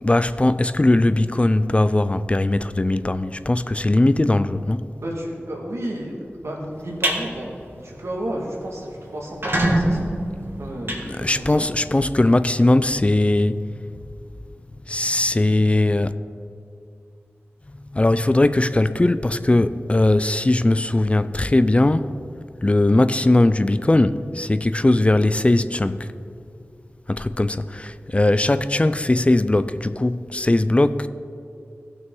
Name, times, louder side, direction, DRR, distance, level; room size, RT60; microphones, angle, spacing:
voice 1, 0.0-4.9 11.0-13.6 14.9-16.1 17.9-22.1 22.6-26.0 27.1-31.1, left 2 dB, 25° left, 0.3 m, -19 dB
voice 2, 5.0-6.2 6.4-7.5 7.8-10.1 10.6-11.7, right 1 dB, 80° right, 1.8 m, -32 dB
sound 1, 6.7-7.2 7.6-7.9 8.2-8.3 8.6-8.7 9.2-11.7, right 1 dB, 55° right, 1.6 m, -24 dB
15.5 x 6.1 x 3.8 m
wide cardioid pair, 50°, 5 cm